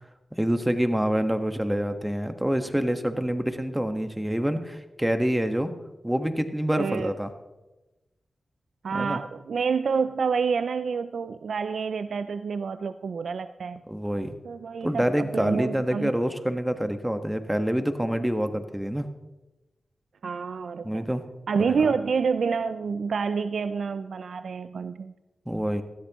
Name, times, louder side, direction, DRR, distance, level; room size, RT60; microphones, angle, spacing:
voice 1, 0.4-5.7 6.0-7.3 8.9-9.2 13.9-14.4 14.8-19.1 20.8-21.2 21.7-21.9 25.5-25.8, equal, 10° right, 7 dB, 1.4 m, -26 dB
voice 2, 6.8-7.1 8.8-13.8 14.4-16.1 20.2-21.1 21.5-25.1, right 5 dB, 80° right, 12 dB, 0.4 m, -28 dB
18.5 x 13.5 x 3.0 m, 1.1 s
cardioid pair, 45°, 0 cm